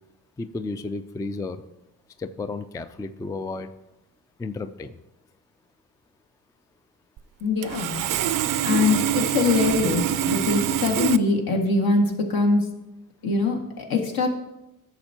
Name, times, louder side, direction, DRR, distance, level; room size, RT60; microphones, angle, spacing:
voice 1, 0.4-1.6 2.2-3.7 4.4-4.9 8.2-8.4, left 3 dB, 10° left, 11 dB, 0.3 m, -33 dB
Sawing, 7.2-7.3 7.6-11.2, right 10 dB, 55° right, 0.5 m, -25 dB
voice 2, 7.4-8.0 8.6-12.7 13.2-14.3, left 3 dB, 65° left, 1 dB, 1.9 m, -23 dB
11.5 x 6.9 x 2.9 m, 0.95 s
cardioid pair, 75°, 38 cm